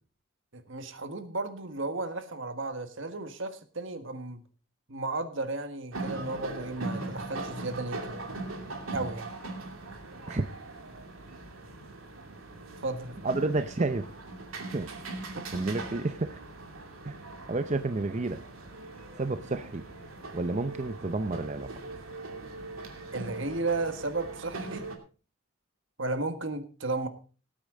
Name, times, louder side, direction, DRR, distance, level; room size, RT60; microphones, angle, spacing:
voice 1, 0.5-4.4 4.9-8.3 8.9-9.3 12.8-13.1 15.3-15.5 23.1-24.9 26.0-27.1, right 2 dB, 65° right, 8 dB, 1.5 m, -34 dB
sound 1, 5.9-25.0, right 2 dB, 85° right, 2.6 m, -40 dB
voice 2, 13.2-14.1 14.7-14.9 15.5-16.4 17.0-17.2 17.5-18.4 19.2-19.9 20.3-21.7, right 2 dB, 35° right, 9 dB, 0.6 m, -30 dB
18.0 x 8.7 x 3.8 m, 0.36 s
head